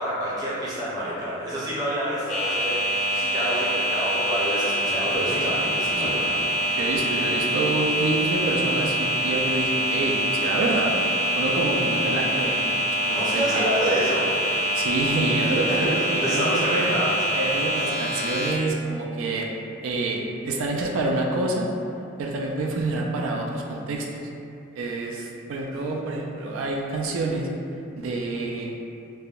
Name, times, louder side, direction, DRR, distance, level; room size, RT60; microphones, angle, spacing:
voice 1, 0.0-6.3 13.1-14.2 15.7-17.2, right 1 dB, 20° right, -8 dB, 0.5 m, -28 dB
sound 1, 2.3-18.5, right 1 dB, 35° left, 0.5 m, -25 dB
voice 2, 6.8-10.9 11.3-13.7 14.7-16.8 17.3-19.5 19.8-21.7 22.2-24.3 24.7-27.5 28.0-28.7, right 2 dB, 90° right, -1 dB, 0.3 m, -27 dB
3.4 x 2.1 x 2.3 m, 2.6 s
head